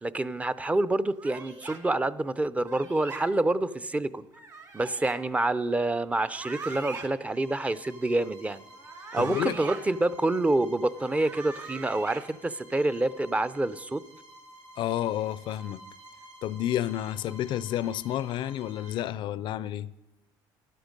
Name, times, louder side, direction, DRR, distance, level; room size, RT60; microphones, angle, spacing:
voice 1, 0.0-4.2 4.7-8.6 9.1-14.0, right 2 dB, 15° right, 0.5 m, -27 dB
sound 1, 1.2-1.8 2.6-3.2 4.3-5.2 6.2-7.1 8.7-9.8 10.9-12.2, right 4 dB, 40° right, 1.9 m, -41 dB
Bowed string instrument, 7.3-19.1, right 1 dB, 70° right, 4.7 m, -51 dB
voice 2, 9.2-9.6 14.8-15.8 16.4-19.9, left 12 dB, 60° left, 0.4 m, -30 dB
13.0 x 12.0 x 5.2 m
cardioid pair, 110°, 9 cm